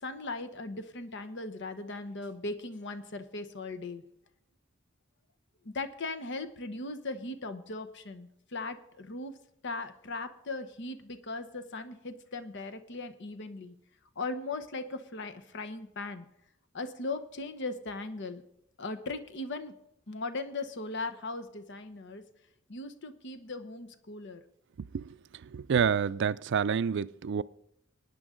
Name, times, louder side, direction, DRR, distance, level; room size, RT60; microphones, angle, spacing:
voice 1, 0.0-4.0 5.6-9.3 9.6-13.7 14.2-16.2 16.7-18.4 18.8-19.7 20.1-22.2 22.7-24.4, left 3 dB, 60° left, 1.0 m, -38 dB
voice 2, 25.5-27.4, right 7 dB, 60° right, 0.4 m, -28 dB
23.0 x 9.7 x 3.8 m
head